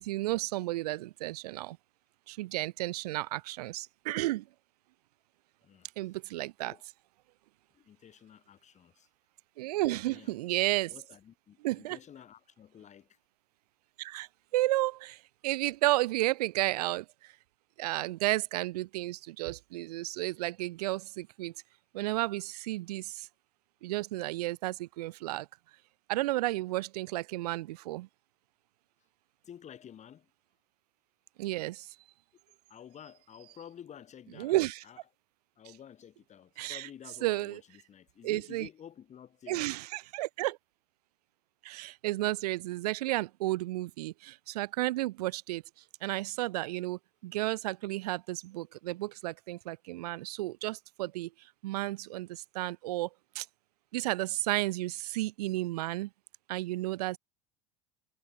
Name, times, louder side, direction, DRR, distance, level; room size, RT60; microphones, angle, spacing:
voice 1, 0.0-1.8 2.3-4.5 6.0-6.7 9.6-10.9 11.6-12.0 14.0-17.3 17.8-21.5 21.9-23.3 23.8-25.5 26.1-28.1 31.4-31.9 34.4-34.8 36.6-36.9 37.2-37.6 38.2-38.7 39.5-40.6 41.6-45.6 46.0-53.1 53.3-53.5 53.9-56.1 56.5-57.2, right 18 dB, 85° right, 0.9 m, -32 dB
voice 2, 7.7-9.1 9.9-10.4 10.9-13.2 29.4-30.3 32.7-35.0 35.6-39.7, left 9 dB, 35° left, 5.8 m, -51 dB
supercardioid pair, 100°, 20 cm